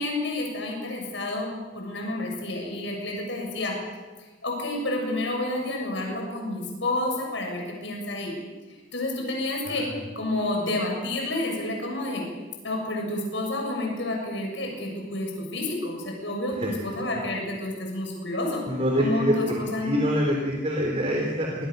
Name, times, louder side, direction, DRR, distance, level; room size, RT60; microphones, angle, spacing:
voice 1, 0.0-3.8 4.4-8.4 8.9-12.3 12.6-18.6 19.0-20.0, left 1 dB, 70° left, 0 dB, 7.2 m, -29 dB
voice 2, 18.7-21.5, equal, 30° right, 1 dB, 3.5 m, -25 dB
26.5 x 21.0 x 6.8 m, 1.3 s
head